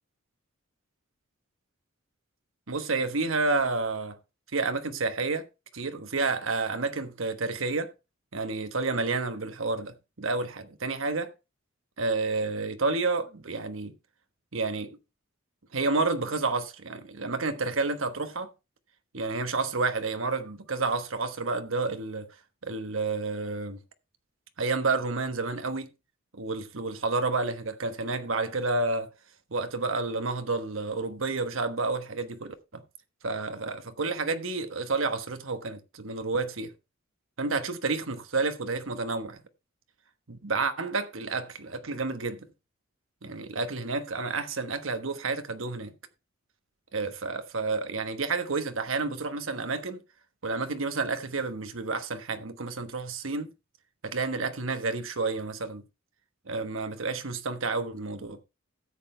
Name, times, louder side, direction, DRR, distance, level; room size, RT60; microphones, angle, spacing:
voice 1, 2.7-4.2 4.5-5.5 5.7-7.9 8.3-11.3 12.0-13.9 14.5-14.9 15.7-18.5 19.1-22.3 22.6-23.8 24.6-25.9 26.3-29.1 29.5-32.5 33.2-36.7 37.4-39.4 40.3-42.5 43.2-45.9 46.9-50.0 50.4-53.5 54.0-55.8 56.5-58.4, right 3 dB, 80° right, 1.2 m, -30 dB
13.0 x 7.9 x 3.3 m
head